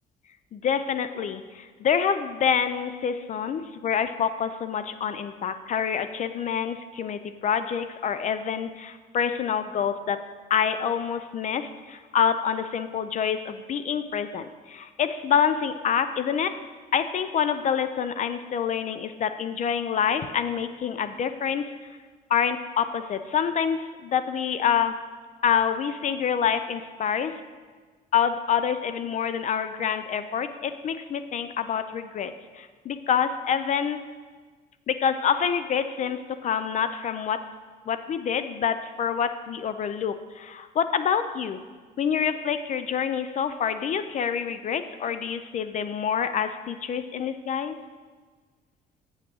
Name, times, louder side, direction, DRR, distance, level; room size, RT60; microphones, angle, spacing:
voice 1, 0.5-10.2 10.5-16.5 16.9-21.7 22.3-24.9 25.4-27.4 28.1-34.0 34.9-37.4 37.9-41.6 42.0-47.8, left 7 dB, 45° left, 10 dB, 0.5 m, -27 dB
8.0 x 6.0 x 6.2 m, 1.4 s
cardioid pair, 110°, 17 cm